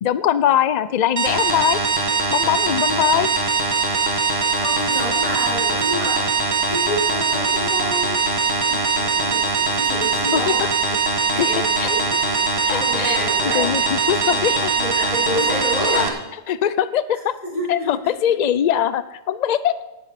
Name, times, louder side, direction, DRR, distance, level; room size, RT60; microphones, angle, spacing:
voice 1, 0.0-1.8 2.3-3.3 10.3-10.4 11.4-11.5 11.8-11.9 12.7-13.2 13.5-14.7 15.9-16.1 16.5-17.4 17.7-19.7, left 10 dB, 85° left, 15 dB, 0.3 m, -21 dB
sound 1, 1.2-16.1, right 4 dB, 50° right, 1.6 m, -21 dB
voice 2, 4.5-6.3 6.7-8.2 8.7-10.7 11.2-12.4 12.7-13.7 14.0-16.1 17.4-18.1, equal, 30° left, -3 dB, 4.0 m, -29 dB
16.5 x 10.5 x 4.2 m, 0.97 s
omnidirectional pair, 1.4 m